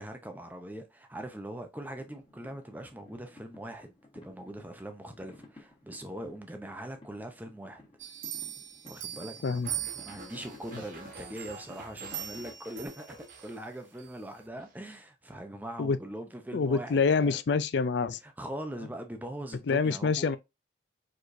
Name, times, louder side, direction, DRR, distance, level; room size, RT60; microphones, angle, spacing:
voice 1, 0.0-7.8 8.8-17.4 18.2-20.4, right 1 dB, 10° right, 0.7 m, -42 dB
sound 1, 2.0-12.9, left 2 dB, 25° left, 1.6 m, -56 dB
sound 2, 8.0-10.6 11.1-13.5 14.0-14.1, right 11 dB, 80° right, 0.7 m, -40 dB
sound 3, 9.6-14.1 14.4-14.8, right 1 dB, 45° right, 1.3 m, -49 dB
voice 2, 16.5-18.2 19.7-20.4, left 5 dB, 65° left, 0.4 m, -26 dB
4.9 x 4.0 x 2.6 m
head